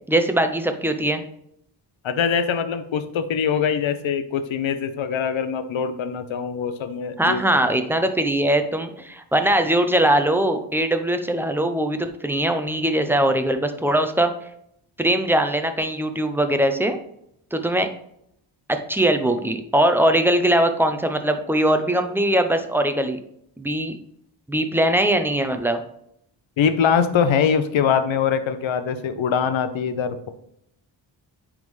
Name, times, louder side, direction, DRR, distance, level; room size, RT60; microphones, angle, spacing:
voice 1, 0.1-1.2 7.2-14.3 15.0-17.0 17.5-17.9 18.7-23.2 23.6-24.0 24.5-25.8, right 1 dB, 5° right, 6 dB, 0.6 m, -21 dB
voice 2, 2.0-7.7 26.6-30.3, left 7 dB, 80° left, 10 dB, 0.8 m, -23 dB
9.3 x 3.7 x 3.2 m, 0.73 s
wide cardioid pair, 110°, 46 cm